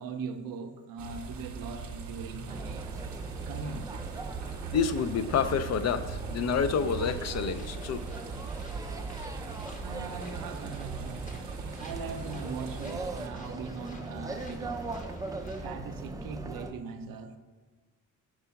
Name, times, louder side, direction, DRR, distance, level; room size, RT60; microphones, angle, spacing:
voice 1, 0.0-3.0 3.5-4.0 9.8-11.4 11.8-15.2 15.6-17.4, right 5 dB, 85° right, 0.6 m, -40 dB
sound 1, 1.0-13.3, right 6 dB, 55° right, 0.8 m, -40 dB
sound 2, 2.5-16.7, right 2 dB, 10° right, 0.4 m, -40 dB
voice 2, 4.7-8.0, left 6 dB, 50° left, 0.5 m, -28 dB
sound 3, 6.7-15.7, left 1 dB, 25° left, 0.9 m, -53 dB
4.8 x 4.6 x 5.7 m
cardioid pair, 100°, 34 cm